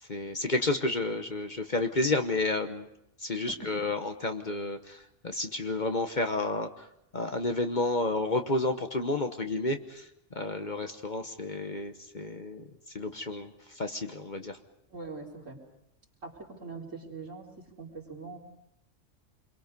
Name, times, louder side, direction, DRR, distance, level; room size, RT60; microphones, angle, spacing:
voice 1, 0.0-2.9 3.2-6.9 7.1-10.1 10.3-12.7 12.9-14.6, left 2 dB, 40° left, 6 dB, 1.2 m, -31 dB
voice 2, 3.5-3.8 14.9-15.6 16.2-18.4, right 4 dB, 75° right, -2 dB, 4.1 m, -43 dB
27.5 x 22.5 x 5.4 m, 0.79 s
omnidirectional pair, 1.3 m